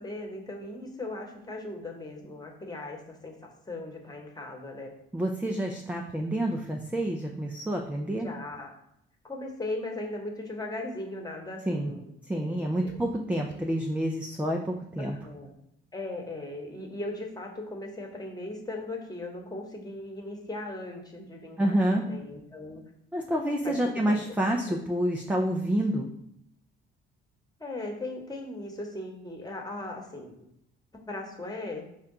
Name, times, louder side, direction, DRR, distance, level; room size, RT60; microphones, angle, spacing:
voice 1, 0.0-4.9 8.1-8.7 9.2-13.0 15.0-15.5 15.9-22.8 23.6-23.7 24.1-24.2 24.7-24.8 27.6-30.3 31.1-31.9, left 2 dB, 15° left, 0 dB, 1.2 m, -38 dB
voice 2, 5.1-8.3 11.7-11.9 12.3-15.2 21.6-22.1 23.1-26.1, right 1 dB, 5° right, 1 dB, 0.5 m, -28 dB
5.1 x 2.2 x 3.7 m, 0.76 s
hypercardioid pair, 50°, 29 cm